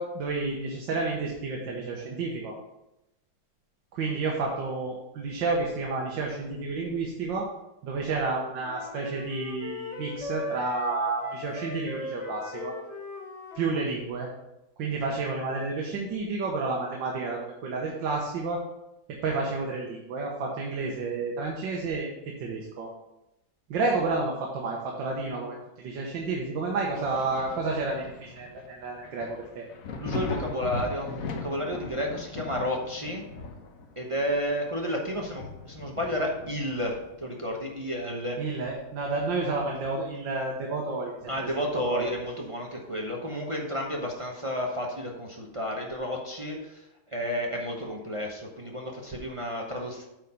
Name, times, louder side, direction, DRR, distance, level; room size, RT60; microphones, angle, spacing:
voice 1, 0.0-2.6 3.9-7.5 7.8-12.7 13.6-14.3 14.8-18.6 19.1-22.1 22.4-22.9 23.7-29.6 38.4-41.1 41.8-42.1, right 3 dB, 75° right, -1 dB, 1.8 m, -30 dB
sound 1, 8.6-13.8, left 3 dB, 80° left, 2.4 m, -39 dB
Thunder, 26.9-38.3 38.7-40.2 40.5-40.6 41.2-42.5 43.9-44.0, left 3 dB, 55° left, 1.1 m, -40 dB
voice 2, 30.0-33.2 34.0-38.4 41.3-50.1, equal, 25° right, 0 dB, 0.6 m, -31 dB
8.9 x 4.6 x 5.5 m, 0.91 s
omnidirectional pair, 2.0 m